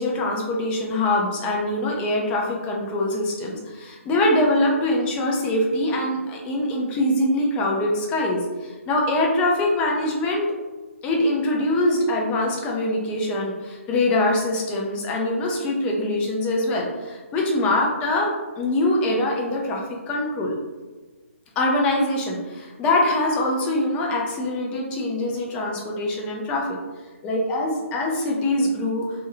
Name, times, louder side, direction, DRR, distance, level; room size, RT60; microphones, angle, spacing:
voice 1, 0.0-10.5 11.0-20.5 21.6-26.8 27.2-29.1, left 1 dB, 15° left, -1 dB, 0.4 m, -23 dB
2.6 x 2.2 x 2.8 m, 1.3 s
figure-of-eight pair, 135°, 8 cm